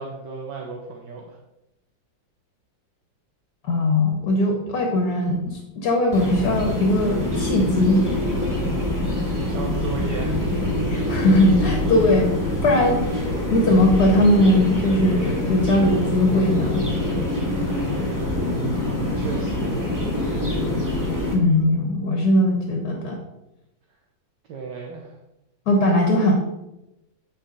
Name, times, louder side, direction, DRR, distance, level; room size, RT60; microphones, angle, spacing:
voice 1, 0.0-1.4 4.7-5.0 8.4-10.5 11.7-11.9 17.3-17.6 17.9-18.5 18.9-19.8 24.5-25.1, right 4 dB, 65° right, 0 dB, 1.5 m, -35 dB
voice 2, 3.6-8.1 10.9-12.3 12.6-16.8 21.3-23.2 25.7-26.4, left 1 dB, 60° left, 2 dB, 1.7 m, -20 dB
sound 1, 6.1-21.3, left 1 dB, 10° right, 1.6 m, -25 dB
9.3 x 5.7 x 4.1 m, 0.92 s
omnidirectional pair, 2.1 m